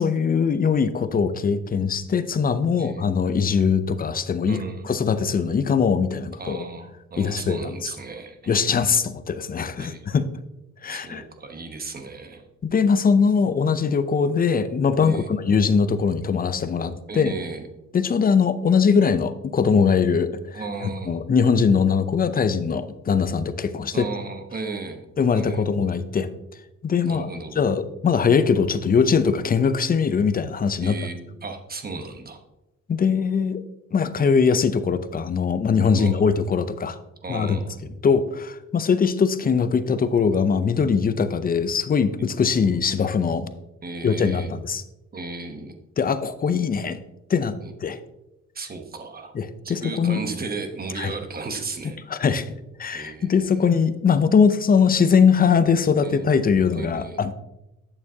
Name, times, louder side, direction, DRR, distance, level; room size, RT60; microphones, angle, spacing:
voice 1, 0.0-4.6 4.8-6.6 7.2-7.9 8.5-10.3 10.8-11.2 12.6-17.3 17.9-24.1 25.2-26.3 26.8-27.3 27.6-31.0 32.9-33.6 33.9-37.0 37.3-37.6 38.0-43.4 44.0-44.8 46.0-47.0 47.3-47.5 47.8-48.0 49.3-50.2 51.0-51.1 52.1-52.4 52.8-57.3, left 6 dB, 30° left, 12 dB, 0.5 m, -21 dB
voice 2, 4.5-4.9 6.4-8.9 9.8-10.1 10.9-12.4 15.0-15.3 17.1-17.7 20.5-21.2 23.9-25.1 25.3-25.7 27.0-27.5 30.8-32.4 36.0-36.2 37.2-37.8 43.8-44.5 45.1-45.8 47.6-47.7 48.5-49.4 49.6-52.0 52.9-53.7 56.0-56.4 56.7-57.2, right 3 dB, 30° right, 5 dB, 1.1 m, -35 dB
8.7 x 6.9 x 2.8 m, 0.94 s
cardioid pair, 90°, 30 cm